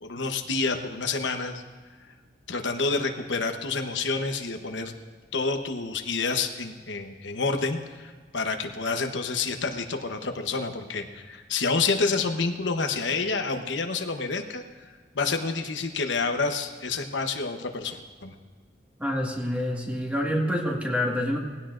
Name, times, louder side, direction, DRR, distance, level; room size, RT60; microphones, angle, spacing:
voice 1, 0.0-1.6 2.5-4.9 5.3-14.6 15.1-18.3, left 4 dB, 85° left, 5 dB, 1.0 m, -28 dB
voice 2, 19.0-21.4, equal, 10° right, -1 dB, 1.8 m, -27 dB
19.5 x 16.0 x 2.6 m, 1.5 s
head